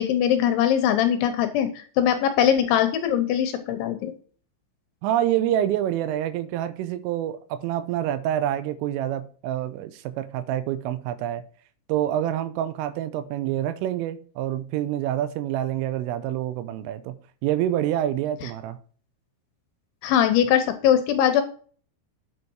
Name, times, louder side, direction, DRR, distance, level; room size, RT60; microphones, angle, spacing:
voice 1, 0.0-4.1 18.4-18.5 20.0-21.4, left 10 dB, 75° left, 3.0 m, -21 dB
voice 2, 5.0-11.4 11.9-17.1 17.4-18.8, right 12 dB, 80° right, 3.2 m, -27 dB
9.5 x 8.2 x 4.6 m
omnidirectional pair, 6.0 m